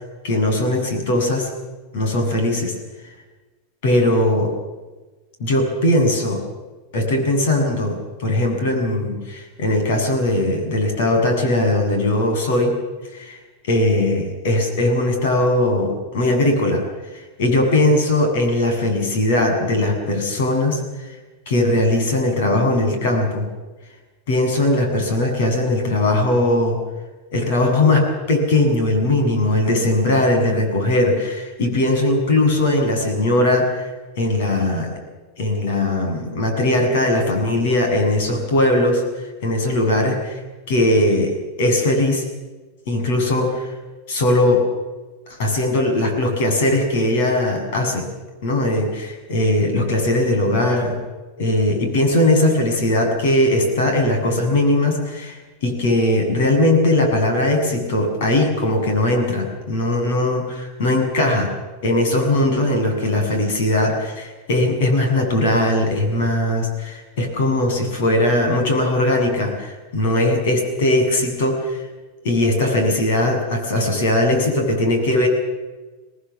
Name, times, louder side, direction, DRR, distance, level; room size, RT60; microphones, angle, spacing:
voice 1, 0.2-1.5 1.9-2.7 3.8-4.5 5.4-6.4 6.9-12.7 13.1-13.4 13.7-16.8 17.1-20.8 21.5-23.5 24.3-26.8 27.3-33.8 34.2-34.9 35.4-39.0 39.4-40.4 40.7-42.3 42.9-43.7 44.1-44.7 45.3-48.1 48.4-51.0 51.4-55.4 55.6-61.5 61.8-71.8 72.2-75.3, left 1 dB, 70° left, 4 dB, 7.4 m, -19 dB
25.0 x 18.5 x 7.3 m, 1.2 s
supercardioid pair, 155°, 0 cm